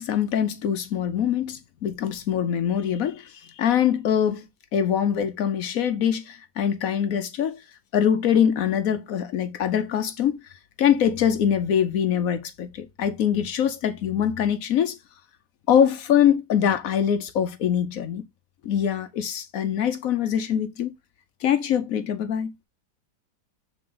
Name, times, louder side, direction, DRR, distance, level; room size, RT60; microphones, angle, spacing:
voice 1, 0.0-7.6 7.9-10.4 10.8-15.0 15.7-18.2 18.6-20.9 21.4-22.5, left 9 dB, 65° left, 0.9 m, -23 dB
6.7 x 3.7 x 3.8 m
omnidirectional pair, 2.2 m